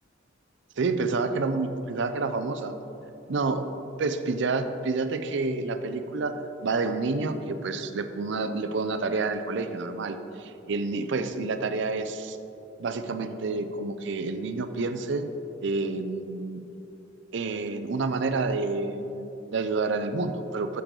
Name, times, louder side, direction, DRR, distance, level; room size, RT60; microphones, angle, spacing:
voice 1, 0.8-2.8 3.3-3.6 4.0-12.4 12.8-15.3 15.6-16.6 17.3-20.8, right 3 dB, 65° right, 9 dB, 0.5 m, -29 dB
9.4 x 7.0 x 3.8 m, 3.0 s
head